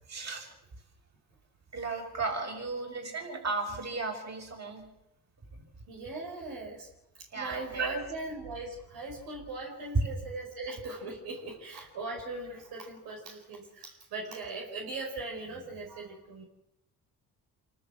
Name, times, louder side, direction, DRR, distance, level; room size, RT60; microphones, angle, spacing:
voice 1, 0.1-0.5 1.7-4.8 5.5-5.6 7.3-7.9 9.9-10.1, right 3 dB, 45° right, 2 dB, 7.1 m, -34 dB
voice 2, 5.9-6.9 7.3-16.4, right 2 dB, 85° right, 0 dB, 4.6 m, -39 dB
27.0 x 13.5 x 7.8 m, 0.88 s
cardioid pair, 80°, 36 cm